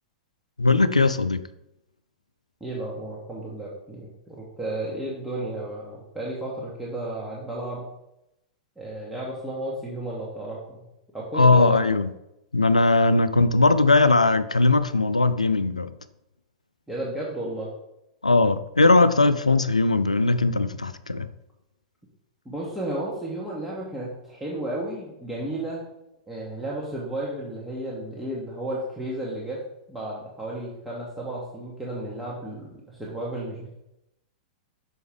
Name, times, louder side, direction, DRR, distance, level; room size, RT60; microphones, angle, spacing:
voice 1, 0.6-1.4 11.3-12.1 12.5-15.9 18.2-21.3, left 3 dB, 85° left, 12 dB, 0.4 m, -19 dB
voice 2, 2.6-7.8 8.8-10.9 11.1-12.0 16.9-17.7 22.4-25.8 26.3-29.6 29.9-33.7, right 1 dB, 5° right, -6 dB, 1.3 m, -33 dB
6.2 x 4.6 x 3.5 m, 0.85 s
figure-of-eight pair, 95°, 4 cm